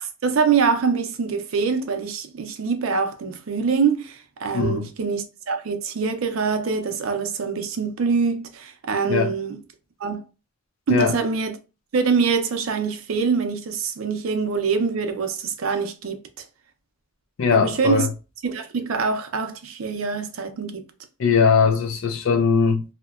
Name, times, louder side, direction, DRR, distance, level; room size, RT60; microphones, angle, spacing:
voice 1, 0.0-9.6 10.0-10.2 10.9-11.6 11.9-16.2 17.5-18.1 18.4-20.8, right 5 dB, 90° right, 0.5 m, -24 dB
voice 2, 4.5-4.9 9.1-9.3 10.9-11.1 17.4-18.1 21.2-22.8, left 5 dB, 70° left, 0.4 m, -20 dB
2.8 x 2.1 x 2.3 m
head